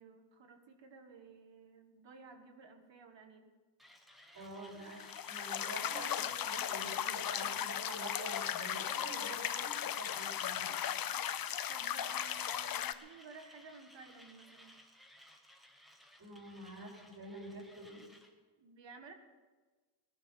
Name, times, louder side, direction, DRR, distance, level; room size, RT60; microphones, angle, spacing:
voice 1, 0.0-3.5 10.7-10.8 11.1-14.8 18.6-19.1, right 4 dB, 65° right, 5 dB, 1.8 m, -55 dB
Mechanisms, 3.8-18.3, left 1 dB, ahead, 1.3 m, -60 dB
voice 2, 4.3-10.7 16.2-18.0, right 1 dB, 45° right, -3 dB, 5.8 m, -47 dB
sound 1, 4.9-12.9, left 10 dB, 50° left, 0.6 m, -37 dB
18.5 x 11.5 x 5.5 m, 1.3 s
wide cardioid pair, 175°, 46 cm